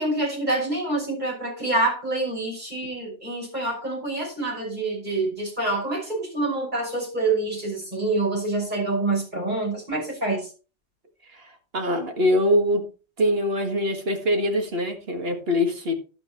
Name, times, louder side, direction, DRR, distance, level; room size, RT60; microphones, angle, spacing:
voice 1, 0.0-10.5, right 2 dB, 40° right, -1 dB, 6.0 m, -26 dB
voice 2, 11.7-12.8 13.2-15.9, left 1 dB, 55° right, 4 dB, 2.0 m, -23 dB
11.0 x 9.5 x 3.0 m, 0.34 s
omnidirectional pair, 1.2 m